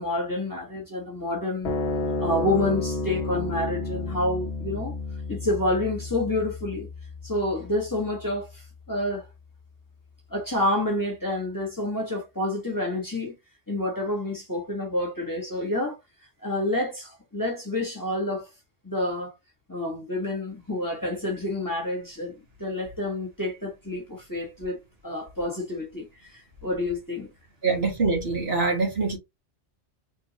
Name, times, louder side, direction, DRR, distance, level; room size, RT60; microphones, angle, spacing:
voice 1, 0.0-1.7 2.2-5.0 5.3-6.9 7.2-8.6 8.9-9.3 10.3-13.3 13.7-16.0 16.4-18.5 18.8-19.3 19.7-27.3, left 1 dB, 15° left, 1.5 m, -28 dB
sound 1, 1.6-8.3, left 3 dB, 55° left, 1.2 m, -31 dB
voice 2, 27.6-29.2, right 4 dB, 55° right, 2.0 m, -24 dB
3.8 x 3.7 x 2.9 m
omnidirectional pair, 1.3 m